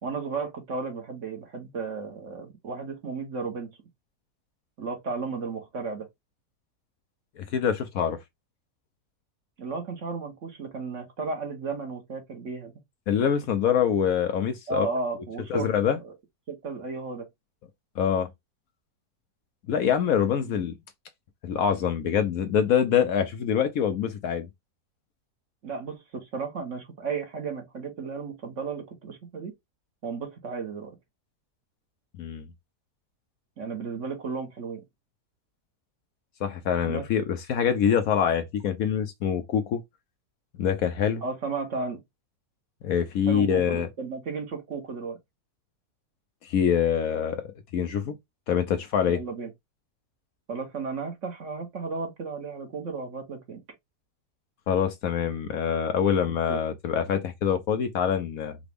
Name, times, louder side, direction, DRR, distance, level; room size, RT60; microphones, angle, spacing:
voice 1, 0.0-3.8 4.8-6.1 9.6-12.7 14.7-15.7 16.5-17.3 20.4-20.6 25.6-29.5 30.0-31.0 33.6-34.8 36.9-37.0 41.2-42.0 43.3-45.2 49.1-49.5 50.5-53.6 56.5-56.6, right 4 dB, 50° right, 1.2 m, -34 dB
voice 2, 7.4-8.2 13.1-14.9 15.5-16.0 18.0-18.3 19.7-20.7 21.4-24.5 32.2-32.4 36.4-39.8 40.6-41.2 42.8-43.9 46.4-47.4 47.7-48.1 48.5-49.2 54.7-58.6, left 8 dB, 65° left, 1.0 m, -25 dB
5.0 x 2.3 x 3.4 m
omnidirectional pair, 1.8 m